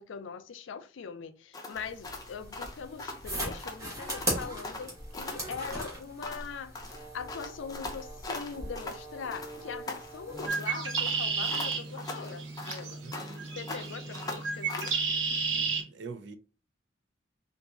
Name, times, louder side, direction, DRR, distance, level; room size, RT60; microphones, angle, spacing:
voice 1, 0.0-6.8 7.1-13.0 13.5-15.0, left 6 dB, 85° left, 0.4 m, -41 dB
sound 1, 1.5-3.8 4.1-4.4 4.6-6.5 6.8-9.0 9.3-10.7 11.0-13.4 13.7-15.0, left 2 dB, 20° left, 0.5 m, -41 dB
sound 2, 1.7-10.5, right 1 dB, 20° right, 1.3 m, -39 dB
Bird, 10.3-15.8, right 5 dB, 90° right, 0.8 m, -32 dB
voice 2, 13.0-13.5 15.5-16.4, right 4 dB, 65° right, 0.4 m, -45 dB
4.0 x 2.5 x 2.4 m
head